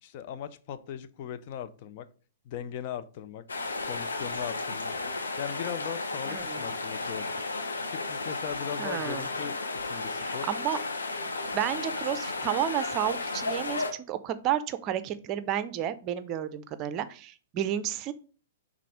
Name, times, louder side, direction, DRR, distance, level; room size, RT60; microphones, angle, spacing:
voice 1, 0.0-2.1 2.4-3.5 3.8-4.9 5.4-7.3 7.9-10.5, left 9 dB, 45° left, 11 dB, 0.5 m, -39 dB
sound 1, 3.5-13.9, left 3 dB, 75° left, 0.9 m, -33 dB
voice 2, 6.3-6.6 8.8-9.3 10.2-10.8 11.5-18.1, right 11 dB, 30° right, 13 dB, 0.5 m, -31 dB
5.8 x 3.6 x 4.8 m, 0.39 s
figure-of-eight pair, 110°, 0 cm